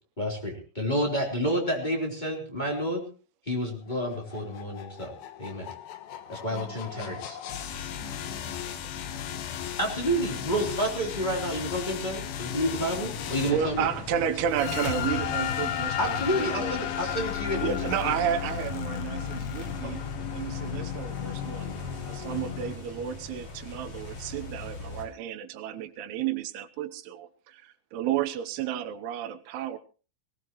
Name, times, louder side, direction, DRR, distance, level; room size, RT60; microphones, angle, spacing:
voice 1, 0.2-3.0 3.4-5.1 5.4-5.7 6.3-7.4 9.8-13.9 16.0-17.8 19.8-19.9, equal, 10° left, 0 dB, 3.3 m, -29 dB
sound 1, 3.9-22.8, left 9 dB, 75° left, 3.0 m, -34 dB
voice 2, 6.5-7.1 8.0-9.3 12.8-13.9, right 3 dB, 35° right, 1 dB, 1.9 m, -50 dB
sound 2, 13.0-25.1, left 2 dB, 45° left, 5.4 m, -42 dB
voice 3, 13.5-16.0 16.3-16.8 17.6-21.7 22.1-29.8, right 10 dB, 85° right, 10 dB, 3.0 m, -32 dB
20.0 x 18.0 x 3.1 m, 0.36 s
omnidirectional pair, 4.5 m